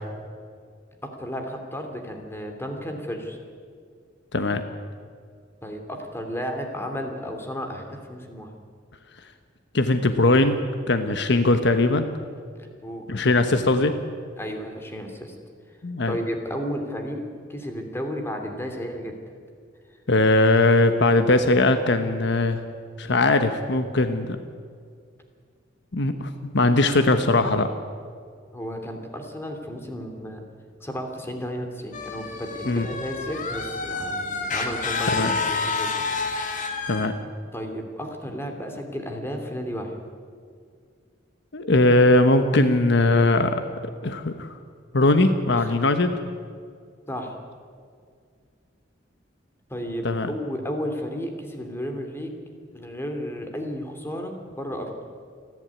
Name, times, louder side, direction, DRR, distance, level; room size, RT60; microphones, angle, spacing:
voice 1, 1.2-3.4 5.6-8.5 12.5-13.1 14.4-15.3 16.1-19.1 28.5-30.4 30.8-35.9 37.5-40.0 45.6-45.7 47.1-47.4 49.7-52.4 52.7-54.9, equal, 15° left, 4 dB, 2.8 m, -33 dB
voice 2, 9.7-10.6 10.9-12.1 13.1-13.9 15.8-16.2 20.1-22.6 23.0-24.4 25.9-27.7 32.7-32.9 35.1-35.3 36.9-37.1 41.5-43.6 44.0-44.5 44.9-46.1 50.0-50.3, left 2 dB, 65° left, 9 dB, 1.1 m, -20 dB
sound 1, 31.9-37.1, left 4 dB, 40° left, 2.1 m, -29 dB
28.5 x 11.0 x 9.4 m, 2.1 s
head